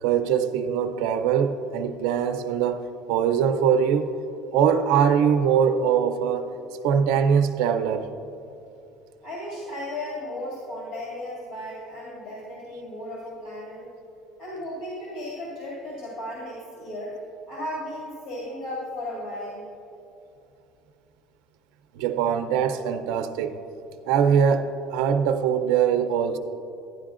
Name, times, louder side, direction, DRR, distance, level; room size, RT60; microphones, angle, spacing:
voice 1, 0.0-4.1 4.5-6.5 6.8-8.1 22.0-23.6 24.1-26.4, right 7 dB, 70° right, 8 dB, 0.4 m, -22 dB
voice 2, 9.2-13.9 14.4-17.1 17.5-19.6, left 1 dB, 65° left, -6 dB, 2.2 m, -35 dB
12.0 x 9.8 x 2.5 m, 2.8 s
cardioid pair, 165°, 0 cm